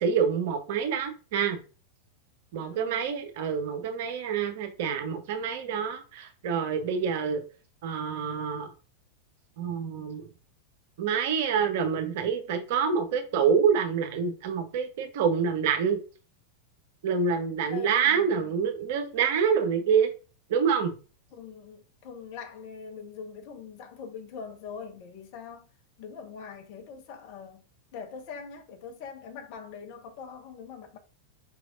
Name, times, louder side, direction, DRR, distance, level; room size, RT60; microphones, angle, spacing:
voice 1, 0.0-1.6 2.5-7.4 7.8-8.7 9.6-10.3 11.0-16.0 17.0-20.1 20.5-20.9, right 6 dB, 50° right, 0.8 m, -27 dB
voice 2, 2.6-3.1 17.7-18.7 21.3-25.7 26.0-27.7 27.9-31.0, left 6 dB, 45° left, 0.7 m, -43 dB
4.7 x 3.3 x 2.4 m
figure-of-eight pair, 90°, 0 cm